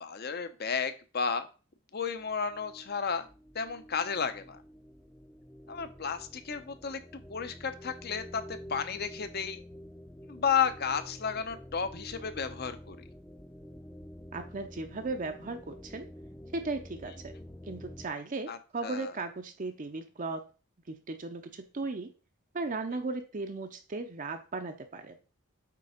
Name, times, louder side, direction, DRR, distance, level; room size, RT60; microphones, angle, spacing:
voice 1, 0.0-1.5 1.9-3.3 3.5-4.6 5.7-9.6 10.3-13.0 18.5-19.1, left 6 dB, 45° left, 10 dB, 0.7 m, -33 dB
sound 1, 2.2-18.1, equal, 10° left, 0.5 m, -49 dB
voice 2, 14.3-16.1 16.5-17.3 17.7-20.4 20.9-22.1 22.5-25.2, right 3 dB, 35° right, 6 dB, 0.6 m, -36 dB
8.4 x 3.4 x 5.0 m, 0.35 s
head